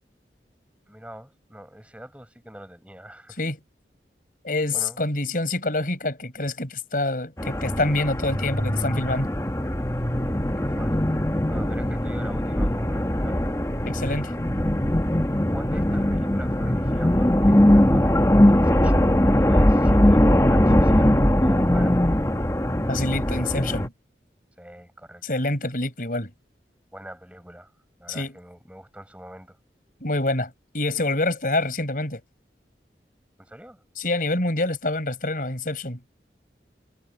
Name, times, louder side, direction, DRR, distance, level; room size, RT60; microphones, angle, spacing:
voice 1, 0.9-3.4 4.7-5.0 10.6-11.1 11.5-13.4 15.5-22.1 24.6-25.4 26.9-27.7 28.0-29.6 33.4-33.8, right 1 dB, 5° right, 7.1 m, -43 dB
voice 2, 4.4-9.3 13.9-14.3 22.9-23.9 25.2-26.3 28.1-28.3 30.0-32.2 34.0-36.0, left 2 dB, 50° left, 5.2 m, -26 dB
sound 1, 7.4-23.9, left 1 dB, 15° left, 1.5 m, -20 dB
head